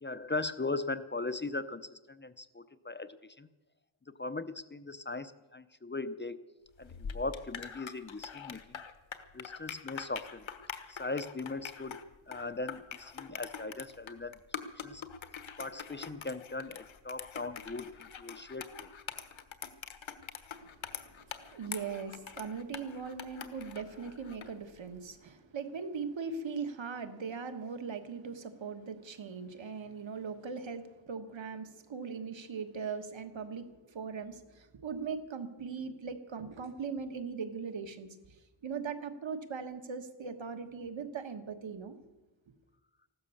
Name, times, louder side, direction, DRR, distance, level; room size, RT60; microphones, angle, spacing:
voice 1, 0.0-3.5 4.1-6.4 6.8-8.8 9.3-10.5 10.9-14.4 14.8-15.0 15.6-18.9, left 3 dB, 25° left, 12 dB, 0.6 m, -39 dB
sound 1, 6.8-24.6, left 7 dB, 75° left, 1.3 m, -44 dB
voice 2, 20.5-42.0, right 5 dB, 70° right, 8 dB, 1.6 m, -40 dB
15.5 x 12.5 x 7.1 m, 1.1 s
wide cardioid pair, 80°, 47 cm